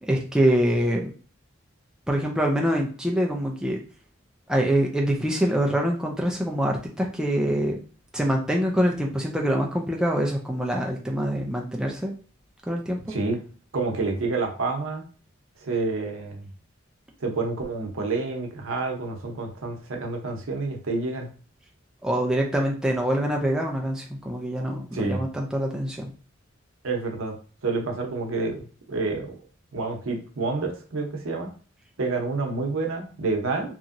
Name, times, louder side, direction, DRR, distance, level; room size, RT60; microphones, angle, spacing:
voice 1, 0.0-1.1 2.1-3.8 4.5-7.8 8.1-12.1 12.7-13.1 22.0-26.1, equal, 5° right, 0 dB, 0.3 m, -25 dB
voice 2, 13.7-15.0 15.6-16.5 17.2-21.3 24.9-25.2 26.8-27.4 27.6-29.3 29.7-31.5 32.0-33.7, right 3 dB, 80° right, 1 dB, 0.7 m, -28 dB
2.9 x 2.6 x 2.5 m, 0.39 s
head